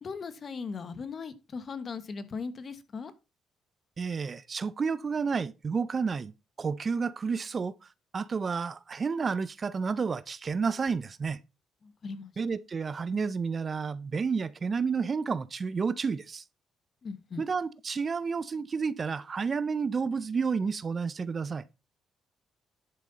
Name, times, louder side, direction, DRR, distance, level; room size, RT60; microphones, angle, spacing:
voice 1, 0.0-3.1 11.8-12.3 17.0-17.4, left 5 dB, 45° left, 1.2 m, -38 dB
voice 2, 4.0-6.3 6.6-7.8 8.1-11.4 12.4-16.4 17.4-21.6, right 5 dB, 40° right, 0.5 m, -30 dB
10.5 x 5.3 x 4.0 m
cardioid pair, 90°, 0 cm